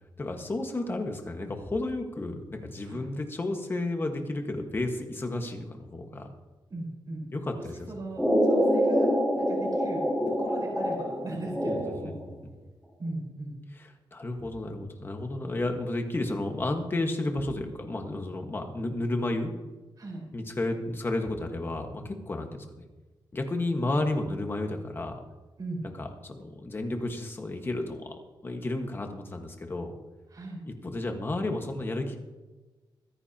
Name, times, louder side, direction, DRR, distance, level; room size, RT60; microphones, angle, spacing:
voice 1, 0.2-6.3 7.3-7.7 11.7-11.8 12.0-12.3 13.7-19.5 20.3-22.8 23.3-25.2 25.8-29.9 30.8-32.2, left 2 dB, 25° left, 4 dB, 1.5 m, -32 dB
voice 2, 6.7-7.3 7.6-9.1 9.4-12.2 13.0-13.6 20.0-20.2 25.6-25.8 30.3-30.6, right 2 dB, 45° right, -3 dB, 4.5 m, -38 dB
sound 1, 8.2-12.2, equal, 5° right, 3.8 m, -26 dB
25.0 x 9.9 x 2.9 m, 1.2 s
wide cardioid pair, 175°, 9 cm